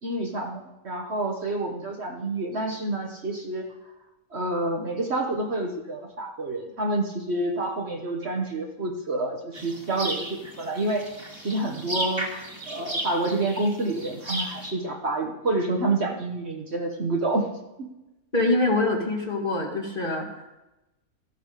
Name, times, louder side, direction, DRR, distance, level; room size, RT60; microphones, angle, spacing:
voice 1, 0.0-3.7 4.3-11.1 11.4-17.5 17.8-17.9, right 2 dB, 50° right, 2 dB, 1.5 m, -28 dB
sound 1, 9.5-14.7, right 1 dB, 20° right, 2.0 m, -34 dB
voice 2, 18.3-20.6, left 2 dB, 35° left, -1 dB, 2.7 m, -25 dB
14.5 x 8.3 x 6.6 m, 0.97 s
omnidirectional pair, 1.5 m